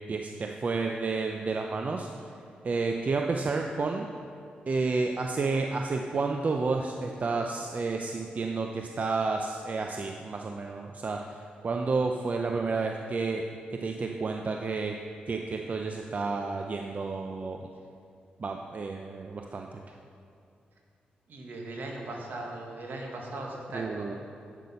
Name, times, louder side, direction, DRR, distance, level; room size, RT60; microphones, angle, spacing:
voice 1, 0.1-2.1 2.6-4.1 4.7-13.5 13.7-15.0 15.3-17.7 18.4-19.7 23.7-24.1, right 4 dB, 50° right, 3 dB, 0.6 m, -30 dB
voice 2, 21.3-24.1, right 2 dB, 70° right, 0 dB, 1.7 m, -38 dB
8.2 x 8.1 x 5.6 m, 2.5 s
cardioid pair, 65°, 3 cm